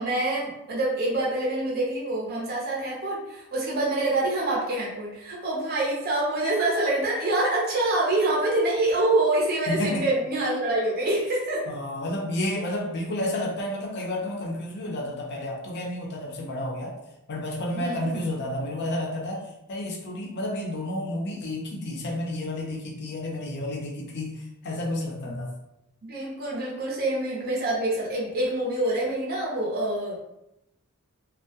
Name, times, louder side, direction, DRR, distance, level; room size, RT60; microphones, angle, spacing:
voice 1, 0.0-11.7 17.7-18.2 26.0-30.1, right 2 dB, 45° right, -4 dB, 0.5 m, -26 dB
voice 2, 9.7-10.1 11.7-16.9 17.3-25.5, left 1 dB, 50° left, -1 dB, 0.5 m, -31 dB
2.2 x 2.0 x 2.7 m, 0.86 s
head